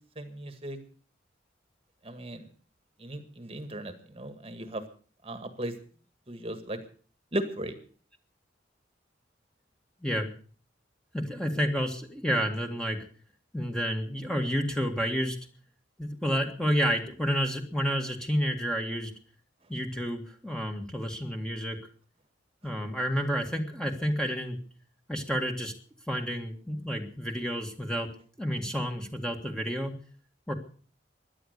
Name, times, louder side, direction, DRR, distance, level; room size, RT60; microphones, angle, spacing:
voice 1, 0.2-0.8 2.0-2.5 3.0-4.8 5.2-5.7 6.3-6.8 7.3-7.7, right 1 dB, 30° right, 9 dB, 1.7 m, -36 dB
voice 2, 10.0-10.3 11.1-13.1 13.5-15.4 16.0-19.1 19.7-21.8 22.6-24.6 25.1-25.7 26.1-28.1 28.4-29.9 30.5-30.6, equal, 5° left, 3 dB, 1.9 m, -30 dB
17.0 x 11.5 x 6.6 m, 0.42 s
head